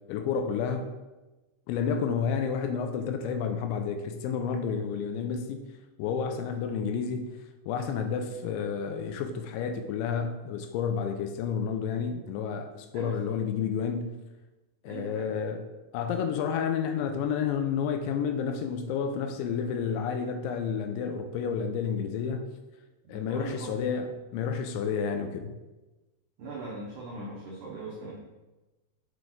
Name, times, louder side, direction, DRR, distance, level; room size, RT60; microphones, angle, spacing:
voice 1, 0.1-0.9 1.7-5.6 6.0-7.3 7.7-14.1 14.8-15.7 15.9-22.5 23.1-25.5, left 6 dB, 85° left, 2.9 m, -30 dB
voice 2, 12.9-13.4 14.9-15.3 23.0-23.8 26.4-28.1, right 3 dB, 75° right, 1.8 m, -40 dB
7.7 x 4.7 x 3.9 m
omnidirectional pair, 5.3 m